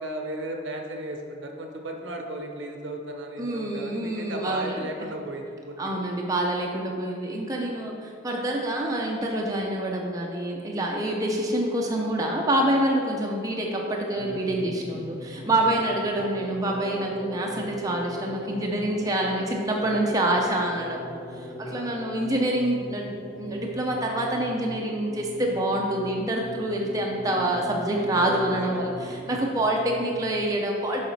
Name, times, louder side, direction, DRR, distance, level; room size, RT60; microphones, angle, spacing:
voice 1, 0.0-6.0 21.6-21.9 28.1-29.5, right 1 dB, 65° right, 3 dB, 0.8 m, -36 dB
voice 2, 3.4-4.9 5.8-31.0, right 1 dB, 20° right, -1 dB, 0.5 m, -27 dB
sound 1, 14.1-30.4, left 1 dB, 50° left, 1.2 m, -39 dB
7.2 x 4.9 x 4.1 m, 2.4 s
head